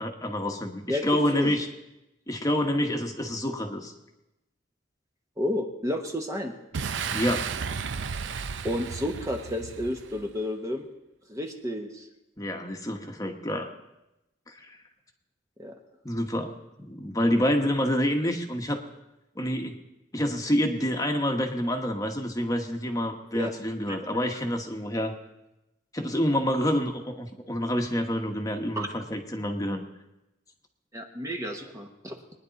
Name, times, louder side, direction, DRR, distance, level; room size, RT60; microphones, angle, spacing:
voice 1, 0.0-1.7 2.3-3.9 7.1-7.5 12.4-13.7 14.5-14.8 16.0-18.8 19.4-19.8 20.1-25.1 25.9-29.8, equal, 20° left, 3 dB, 1.1 m, -28 dB
voice 2, 5.4-6.5 8.6-10.9 11.3-12.0 15.6-15.7 23.3-23.5 23.9-24.0 28.8-28.9 30.9-32.2, left 1 dB, 15° right, 3 dB, 1.0 m, -31 dB
Boom, 6.7-10.4, right 6 dB, 80° right, 0.6 m, -33 dB
21.5 x 10.0 x 4.1 m, 0.93 s
head